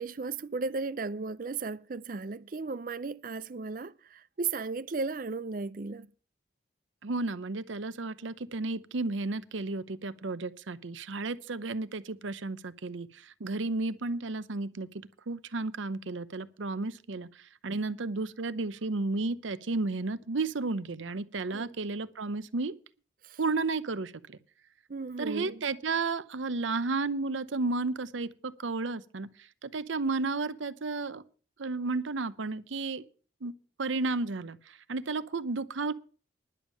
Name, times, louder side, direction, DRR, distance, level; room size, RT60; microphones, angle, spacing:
voice 1, 0.0-6.1 21.5-21.8 23.2-23.4 24.9-25.6, right 4 dB, 45° right, 0.5 m, -35 dB
voice 2, 7.0-14.9 15.3-17.3 17.6-22.8 23.4-24.4 25.2-29.3 29.6-31.2 31.6-33.0 33.4-33.5 33.8-35.9, right 3 dB, 85° right, 0.8 m, -33 dB
10.5 x 7.2 x 7.6 m
head